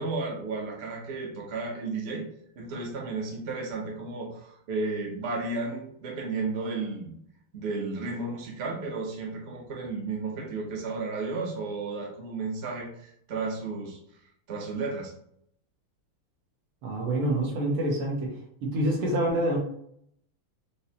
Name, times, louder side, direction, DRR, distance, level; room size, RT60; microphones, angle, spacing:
voice 1, 0.0-2.2 2.6-7.1 7.5-14.0 14.5-15.1, right 3 dB, 75° right, -1 dB, 0.6 m, -33 dB
voice 2, 16.8-18.3 18.6-19.6, right 1 dB, 90° right, 0 dB, 1.8 m, -26 dB
5.2 x 2.0 x 2.8 m, 0.70 s
omnidirectional pair, 2.4 m